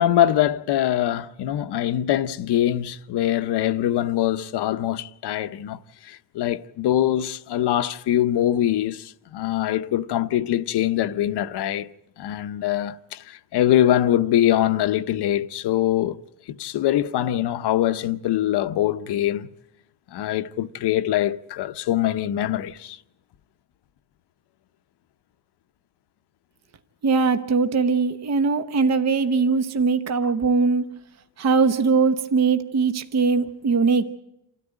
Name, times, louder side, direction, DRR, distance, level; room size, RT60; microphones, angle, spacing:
voice 1, 0.0-5.8 6.0-11.9 12.2-16.2 16.5-19.5 20.1-23.0 30.2-30.3, left 12 dB, 70° left, 0.8 m, -23 dB
voice 2, 27.0-30.8 31.4-34.1, right 4 dB, 40° right, 0.9 m, -21 dB
27.5 x 13.5 x 9.0 m
cardioid pair, 135°, 41 cm